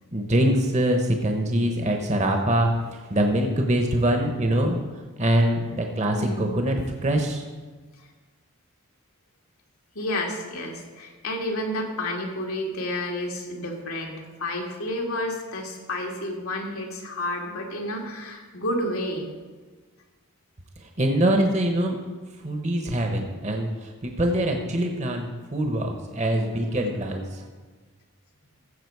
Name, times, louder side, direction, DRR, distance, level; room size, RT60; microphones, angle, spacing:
voice 1, 0.1-4.8 5.2-7.4 20.8-22.0 22.4-27.4, right 1 dB, 35° right, 3 dB, 0.9 m, -24 dB
voice 2, 6.1-6.6 8.0-8.1 9.9-19.3, left 1 dB, 85° left, 1 dB, 2.1 m, -30 dB
15.0 x 7.3 x 4.7 m, 1.4 s
head